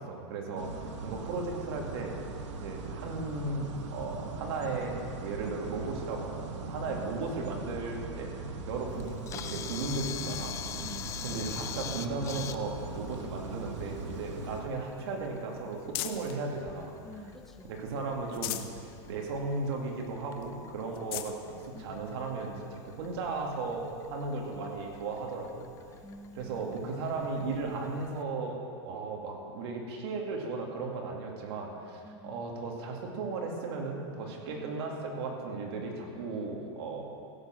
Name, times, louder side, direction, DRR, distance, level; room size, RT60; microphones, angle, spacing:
voice 1, 0.0-0.7 1.0-2.1 2.6-8.3 8.7-10.9 11.2-16.9 17.6-25.7 26.3-37.0, right 3 dB, 60° right, 0 dB, 2.4 m, -36 dB
voice 2, 0.5-1.2 6.8-7.2 10.7-11.1 17.0-17.7 21.7-21.9 26.0-26.6 32.0-32.4 34.5-34.8 36.1-36.7, equal, ahead, 2 dB, 0.9 m, -49 dB
sound 1, 0.6-14.6, right 3 dB, 90° right, 1.3 m, -40 dB
Camera, 8.9-28.2, left 10 dB, 20° left, 0.4 m, -46 dB
sound 2, 13.8-16.4 16.9-17.7 18.1-18.8 19.3-19.4 19.7-19.8 20.4-20.5 20.9-21.4 22.2-22.3 24.1-24.2, left 14 dB, 50° left, 0.8 m, -40 dB
16.0 x 6.9 x 6.4 m, 2.4 s
supercardioid pair, 155°, 15 cm